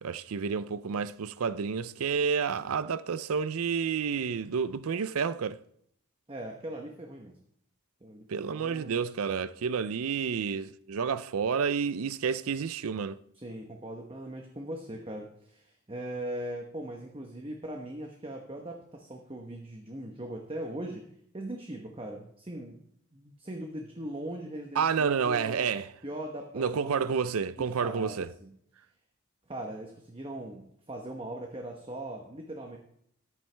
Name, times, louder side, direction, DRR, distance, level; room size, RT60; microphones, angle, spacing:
voice 1, 0.0-5.6 8.3-13.2 24.8-25.9 26.5-28.3, right 6 dB, 75° right, 0.5 m, -30 dB
voice 2, 6.3-7.4 8.0-9.1 13.3-21.1 21.3-22.8 23.1-25.7 26.0-28.5 29.5-32.8, right 1 dB, 25° right, 1.0 m, -40 dB
14.0 x 11.0 x 3.4 m
head